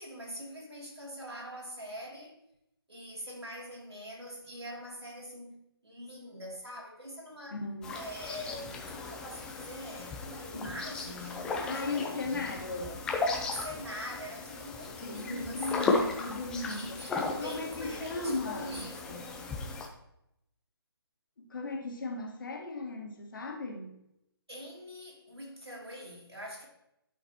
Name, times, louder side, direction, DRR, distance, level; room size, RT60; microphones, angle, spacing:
voice 1, 0.0-2.4 2.9-7.6 7.9-13.0 13.5-16.0 16.7-19.5 24.5-26.7, equal, 90° right, 3.1 m, -44 dB
voice 2, 7.5-7.9 10.5-10.7 11.6-12.9 15.0-17.0 17.4-18.9 21.4-24.0, left 3 dB, 55° left, 1.8 m, -36 dB
sound 1, 7.8-19.9, left 3 dB, 5° left, 0.5 m, -36 dB
11.5 x 5.8 x 3.0 m
figure-of-eight pair, 145°, 13 cm